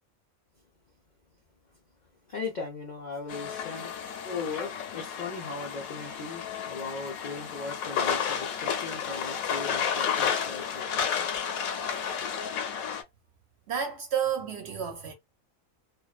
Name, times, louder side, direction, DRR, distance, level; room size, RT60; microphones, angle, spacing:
voice 1, 2.3-11.3, left 4 dB, 60° left, 0.4 m, -38 dB
sound 1, 3.3-13.0, left 7 dB, 80° left, 1.1 m, -32 dB
voice 2, 13.7-15.1, right 8 dB, 60° right, 0.8 m, -31 dB
2.5 x 2.1 x 2.3 m
omnidirectional pair, 1.5 m